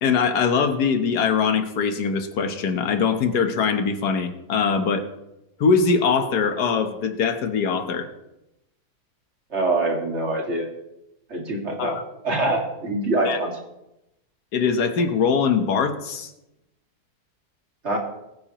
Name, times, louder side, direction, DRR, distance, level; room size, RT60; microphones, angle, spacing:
voice 1, 0.0-5.0 5.6-8.1 11.8-12.0 13.3-13.4 14.5-16.3, left 5 dB, 90° left, 7 dB, 1.6 m, -22 dB
voice 2, 9.5-10.7 11.3-12.0 12.2-13.5 17.8-18.0, right 2 dB, 45° right, 0 dB, 2.4 m, -24 dB
21.0 x 9.5 x 3.0 m, 0.90 s
omnidirectional pair, 1.7 m